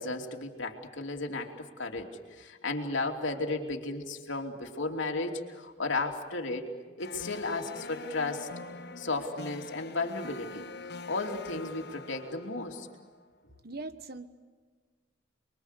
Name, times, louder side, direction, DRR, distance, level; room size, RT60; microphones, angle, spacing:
voice 1, 0.0-6.7 7.0-8.5 9.0-12.9, left 3 dB, 70° left, 2 dB, 3.0 m, -34 dB
sound 1, 7.0-13.3, left 3 dB, 55° left, 1.1 m, -44 dB
voice 2, 13.6-14.3, right 3 dB, 50° right, 10 dB, 1.4 m, -40 dB
30.0 x 23.0 x 8.3 m, 1.5 s
head